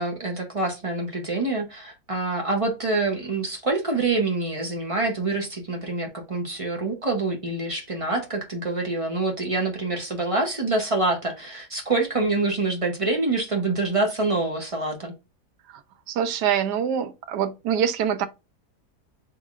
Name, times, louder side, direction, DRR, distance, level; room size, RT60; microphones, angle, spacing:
voice 1, 0.0-15.1, right 3 dB, 30° right, 0.6 m, -26 dB
voice 2, 16.1-18.3, right 8 dB, 90° right, 1.2 m, -25 dB
5.4 x 3.0 x 2.4 m
omnidirectional pair, 1.7 m